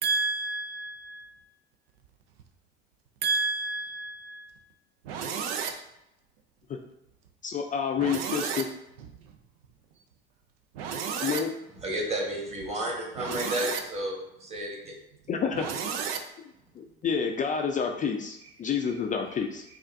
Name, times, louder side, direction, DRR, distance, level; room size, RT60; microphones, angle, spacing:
voice 1, 0.0-1.3 3.2-4.5 5.0-5.8 8.0-8.6 10.7-11.4 13.2-13.8 15.6-16.2, right 5 dB, 90° right, 0.5 m, -31 dB
voice 2, 7.4-8.7 11.2-11.5 15.3-15.7 16.8-19.6, left 6 dB, 30° left, 0.4 m, -29 dB
voice 3, 11.8-14.9, right 1 dB, 20° right, 1.3 m, -32 dB
5.1 x 2.4 x 2.6 m
supercardioid pair, 90°, 29 cm